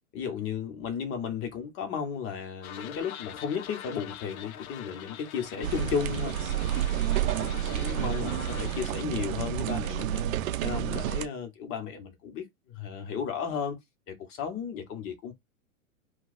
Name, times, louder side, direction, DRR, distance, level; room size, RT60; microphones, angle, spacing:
voice 1, 0.1-6.4 6.7-10.2 10.6-13.8 14.1-15.3, left 7 dB, 30° left, 1.0 m, -34 dB
sound 1, 2.6-9.0, left 10 dB, 80° left, 0.6 m, -43 dB
sound 2, 5.6-11.3, right 12 dB, 70° right, 0.5 m, -30 dB
2.4 x 2.3 x 4.0 m
hypercardioid pair, 115°, 42 cm